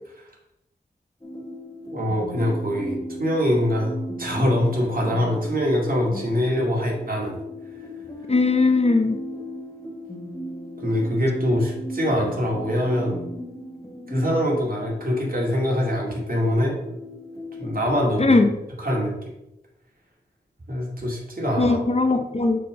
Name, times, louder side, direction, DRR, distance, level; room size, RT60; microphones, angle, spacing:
sound 1, 1.2-18.2, equal, 20° left, 1.3 m, -37 dB
voice 1, 1.9-7.3 10.8-13.2 14.1-16.8 17.6-18.4 18.8-19.1 20.7-21.8, equal, 60° right, -2 dB, 2.3 m, -23 dB
voice 2, 8.3-9.2 18.2-18.5 21.6-22.6, left 3 dB, 40° left, 7 dB, 0.7 m, -19 dB
6.5 x 3.8 x 5.3 m, 0.87 s
wide cardioid pair, 55°, 17 cm